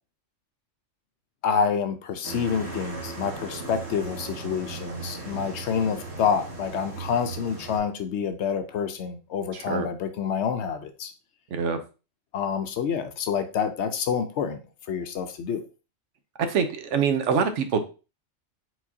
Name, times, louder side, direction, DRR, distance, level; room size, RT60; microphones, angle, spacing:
voice 1, 1.4-11.1 12.3-14.6 14.9-15.6, left 7 dB, 65° left, 8 dB, 0.8 m, -28 dB
sound 1, 2.2-7.8, right 4 dB, 55° right, 1.5 m, -37 dB
voice 2, 9.5-9.9 11.5-11.8 16.4-17.8, right 6 dB, 70° right, 9 dB, 0.9 m, -25 dB
4.6 x 3.9 x 2.7 m, 0.32 s
omnidirectional pair, 1.3 m